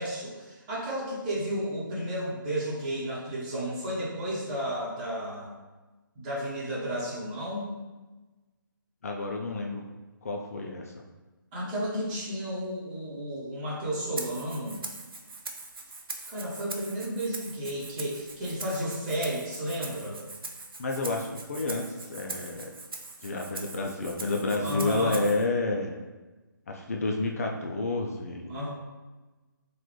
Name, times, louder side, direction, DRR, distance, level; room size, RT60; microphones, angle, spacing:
voice 1, 0.0-5.5 6.1-7.7 11.5-14.8 16.3-20.2 24.6-25.2 28.5-28.7, right 1 dB, 20° right, -8 dB, 1.0 m, -32 dB
voice 2, 9.0-9.8 10.2-11.0 20.8-22.7 23.2-26.0 26.7-28.5, left 3 dB, 45° left, 1 dB, 0.4 m, -30 dB
Rattle (instrument), 14.2-25.4, right 3 dB, 85° right, 0.5 m, -42 dB
3.7 x 2.2 x 3.1 m, 1.2 s
figure-of-eight pair, 155°, 12 cm